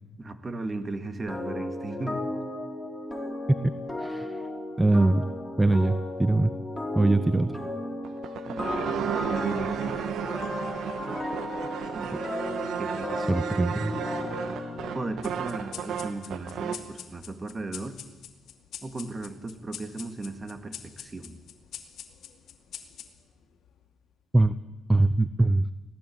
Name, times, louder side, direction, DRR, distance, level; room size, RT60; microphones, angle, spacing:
voice 1, 0.2-2.2 8.5-10.0 11.9-12.2 12.8-13.3 14.9-18.0 18.8-21.4, right 2 dB, 30° right, 8 dB, 2.3 m, -36 dB
sound 1, 1.3-15.9, left 1 dB, 10° left, 4.0 m, -35 dB
voice 2, 4.0-4.4 4.8-5.2 5.6-6.5 6.9-7.6 13.3-13.9 24.3-24.5 24.9-25.7, right 2 dB, 10° right, 14 dB, 0.7 m, -22 dB
sound 2, 8.0-16.9, right 8 dB, 75° right, 1.5 m, -33 dB
sound 3, 15.2-24.1, left 9 dB, 70° left, 2.4 m, -46 dB
24.5 x 17.5 x 8.9 m, 1.2 s
cardioid pair, 90°, 0 cm